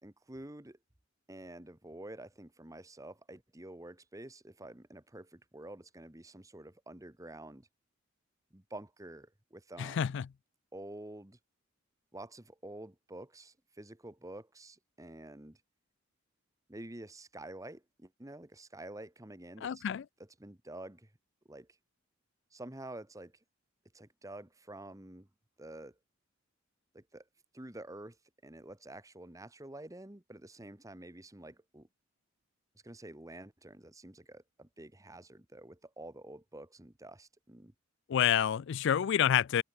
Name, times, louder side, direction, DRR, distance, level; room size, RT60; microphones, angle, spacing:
voice 1, 0.0-0.8 1.3-7.7 8.5-10.1 10.7-11.4 12.1-15.6 16.7-19.8 20.4-21.1 21.5-21.7 22.5-23.3 23.9-25.3 25.6-25.9 26.9-27.2 27.5-28.2 28.4-31.9 32.8-37.7, right 1 dB, 15° right, 1.4 m, -48 dB
voice 2, 9.8-10.3 19.6-20.0 38.1-39.6, left 9 dB, 60° left, 0.3 m, -28 dB
head